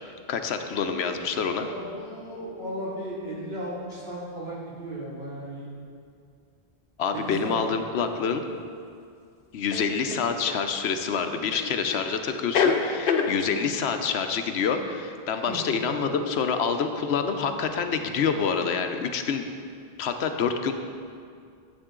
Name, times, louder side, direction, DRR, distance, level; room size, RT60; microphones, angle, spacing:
voice 1, 0.3-1.7 7.0-8.4 9.5-19.4 20.0-20.7, left 6 dB, 90° left, 7 dB, 0.9 m, -27 dB
voice 2, 1.5-5.7 7.1-7.5 15.5-16.3, equal, 80° right, -8 dB, 2.9 m, -36 dB
sound 1, 8.0-8.1 9.7-10.6 11.5-12.1 12.3-13.3, left 6 dB, 65° left, 0.8 m, -25 dB
9.9 x 7.9 x 3.7 m, 2.3 s
omnidirectional pair, 1.0 m